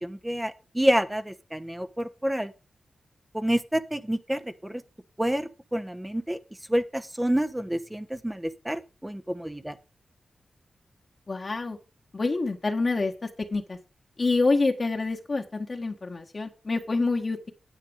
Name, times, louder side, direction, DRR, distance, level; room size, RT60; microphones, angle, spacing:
voice 1, 0.0-2.5 3.3-4.8 5.2-6.4 6.7-9.7, right 1 dB, 10° right, 11 dB, 0.9 m, -28 dB
voice 2, 11.3-11.8 12.1-13.8 14.2-17.5, left 3 dB, 40° left, 2 dB, 1.4 m, -27 dB
9.7 x 8.5 x 5.1 m, 0.31 s
cardioid pair, 80°, 0 cm